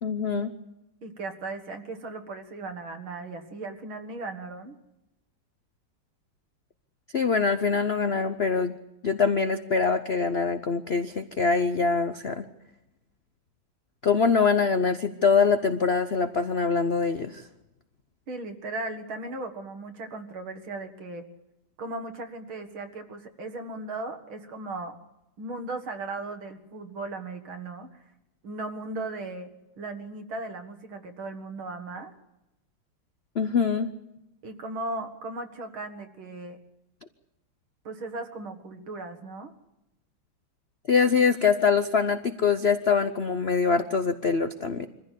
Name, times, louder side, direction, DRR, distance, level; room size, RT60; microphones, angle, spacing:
voice 1, 0.0-0.5 7.1-8.7 9.0-12.5 14.0-17.5 33.3-33.9 40.9-44.9, left 5 dB, 70° left, 10 dB, 0.6 m, -24 dB
voice 2, 1.0-4.8 18.3-21.3 21.8-25.0 25.4-28.0 28.4-29.5 29.8-32.1 34.4-36.6 37.8-39.5, right 2 dB, 70° right, 6 dB, 2.4 m, -37 dB
24.0 x 15.0 x 8.3 m, 0.91 s
omnidirectional pair, 2.4 m